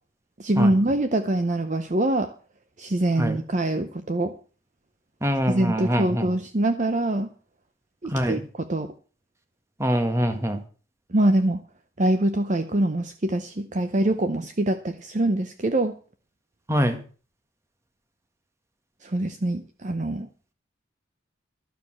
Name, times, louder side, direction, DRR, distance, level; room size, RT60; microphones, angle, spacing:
voice 1, 0.4-2.3 2.8-4.3 5.5-7.3 8.0-8.9 11.1-11.6 12.0-15.9 19.0-20.3, right 1 dB, 40° right, 8 dB, 0.7 m, -24 dB
voice 2, 5.2-6.3 8.1-8.4 9.8-10.6 16.7-17.0, equal, 15° right, 7 dB, 1.6 m, -24 dB
12.0 x 6.7 x 7.7 m, 0.39 s
head